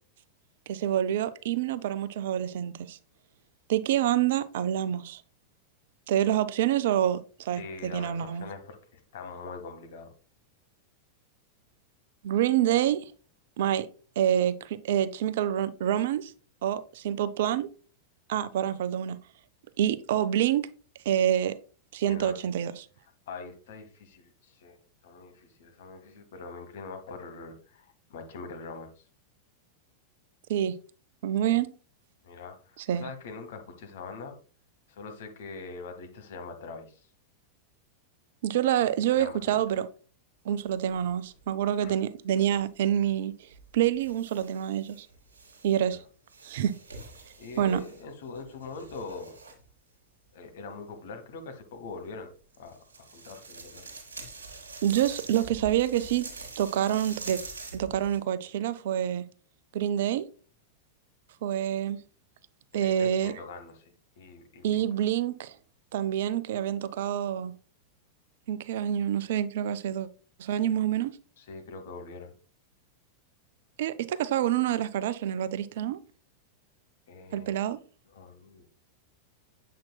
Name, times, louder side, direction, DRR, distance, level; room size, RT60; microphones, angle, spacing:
voice 1, 0.7-3.0 3.7-5.2 6.1-8.5 12.2-13.1 13.6-13.9 14.2-16.3 16.6-17.7 18.3-19.2 19.8-20.7 21.1-21.6 21.9-22.7 30.5-30.8 31.2-31.7 32.9-33.1 38.4-39.9 40.5-43.3 43.7-45.1 45.6-46.0 46.4-46.7 47.6-47.8 54.8-56.3 56.6-57.4 57.7-59.3 59.7-60.3 61.4-62.0 62.7-63.3 64.6-65.6 65.9-67.5 68.5-70.1 70.4-71.1 73.8-76.0 77.3-77.8, right 10 dB, 55° right, 0.4 m, -27 dB
voice 2, 7.6-10.1 22.0-22.3 23.3-29.0 31.4-31.6 32.2-34.4 34.9-37.1 39.1-39.5 41.8-42.0 45.8-46.0 47.4-49.4 50.3-52.3 52.6-53.9 62.7-63.8 64.2-64.9 71.4-72.3 77.1-77.5 78.1-78.6, left 4 dB, 55° left, 1.1 m, -43 dB
sound 1, 40.6-41.4 42.4-42.6 43.5-46.0 46.3-49.7 52.5-58.2, right 3 dB, 70° right, 1.4 m, -45 dB
7.3 x 5.8 x 2.2 m
figure-of-eight pair, 90°, 0 cm